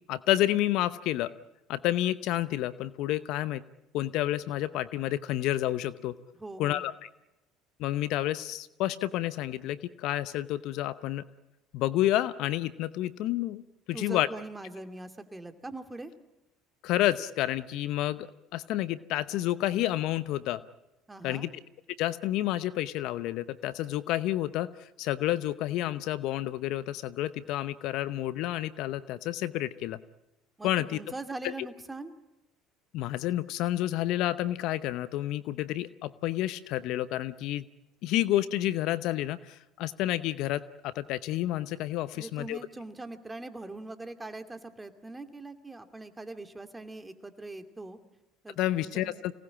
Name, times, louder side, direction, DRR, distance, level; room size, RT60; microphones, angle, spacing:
voice 1, 0.1-1.3 1.7-3.6 3.9-6.1 6.6-7.1 7.8-11.2 11.7-13.6 13.9-14.3 16.8-20.6 21.2-21.5 22.0-24.7 25.0-30.0 30.6-31.0 31.4-31.5 32.9-37.7 38.0-42.6 48.6-49.3, left 14 dB, 65° left, 15 dB, 0.8 m, -30 dB
voice 2, 6.4-6.9 13.9-16.1 21.1-21.5 30.6-32.2 42.1-48.0 48.4-49.1, right 2 dB, 15° right, 8 dB, 2.4 m, -42 dB
25.5 x 19.0 x 8.7 m, 0.98 s
hypercardioid pair, 70°, 0 cm